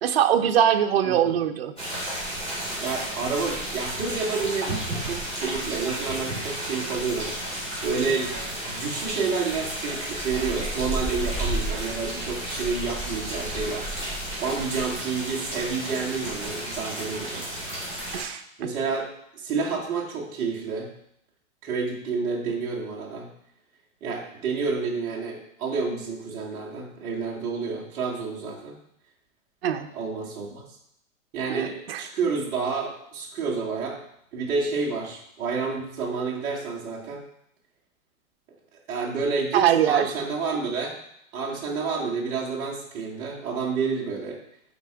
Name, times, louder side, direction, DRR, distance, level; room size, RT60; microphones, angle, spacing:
voice 1, 0.0-1.7 18.1-18.4 29.6-29.9 31.5-32.0 39.5-40.1, right 10 dB, 45° right, 7 dB, 0.6 m, -22 dB
voice 2, 1.0-1.3 2.8-7.3 7.8-8.4 8.6-13.9 14.4-17.5 18.6-19.1 19.3-20.9 21.6-23.3 24.0-28.8 29.9-30.6 31.3-34.0 34.3-37.2 38.9-40.9 41.3-44.4, right 4 dB, 10° right, -5 dB, 0.7 m, -29 dB
sound 1, 1.8-18.2, right 1 dB, 15° left, 2.9 m, -32 dB
8.0 x 4.3 x 4.7 m, 0.75 s
hypercardioid pair, 170°, 42 cm